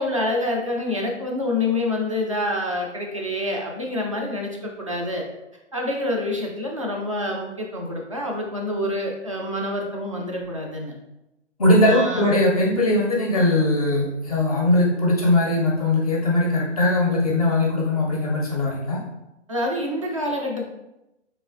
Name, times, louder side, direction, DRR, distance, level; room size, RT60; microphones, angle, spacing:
voice 1, 0.0-5.2 5.7-10.9 11.8-12.3 13.3-13.7 19.5-20.6, left 1 dB, 30° right, 0 dB, 0.3 m, -27 dB
voice 2, 11.6-19.0, left 1 dB, 30° left, -2 dB, 0.5 m, -20 dB
3.8 x 3.0 x 2.5 m, 0.93 s
figure-of-eight pair, 130°, 37 cm